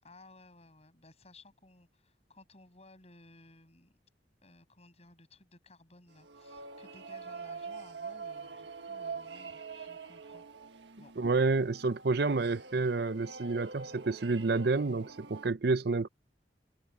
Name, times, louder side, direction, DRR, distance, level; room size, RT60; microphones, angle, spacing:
voice 1, 0.0-4.0 4.4-10.4 11.0-11.1, left 2 dB, 40° left, 6.7 m, -58 dB
sound 1, 6.1-15.5, right 5 dB, 85° right, 1.6 m, -45 dB
voice 2, 11.2-16.1, right 3 dB, 65° right, 0.7 m, -29 dB
head